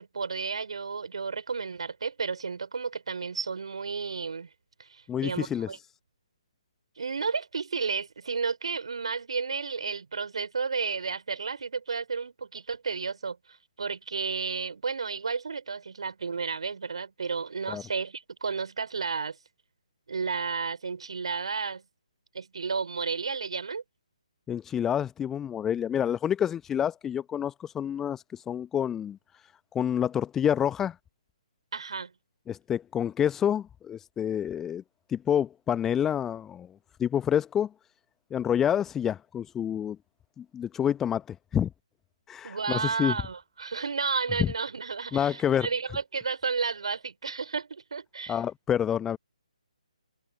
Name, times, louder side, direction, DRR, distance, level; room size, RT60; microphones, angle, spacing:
voice 1, 0.0-4.5 4.8-5.8 7.0-19.4 20.1-21.8 22.3-23.8 31.7-32.1 42.4-48.4, right 5 dB, 55° right, 4.9 m, -32 dB
voice 2, 5.1-5.7 17.7-17.8 24.5-29.2 29.7-30.9 32.5-34.8 35.1-36.7 37.0-37.7 38.3-40.0 40.4-41.7 42.3-43.1 44.4-44.5 45.1-45.7 48.3-49.2, left 9 dB, 10° left, 0.9 m, -28 dB
figure-of-eight pair, 140°, 4 cm